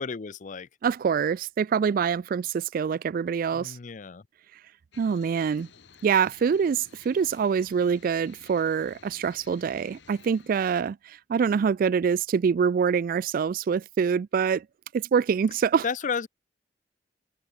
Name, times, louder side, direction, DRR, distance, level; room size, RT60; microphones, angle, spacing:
voice 1, 0.0-0.7 3.5-4.3 15.8-16.3, left 5 dB, 45° left, 0.5 m, -32 dB
voice 2, 0.8-3.8 5.0-5.7 6.0-14.6 14.9-15.8, right 6 dB, 50° right, 0.3 m, -25 dB
sound 1, 4.9-10.8, left 5 dB, 75° left, 1.7 m, -54 dB
head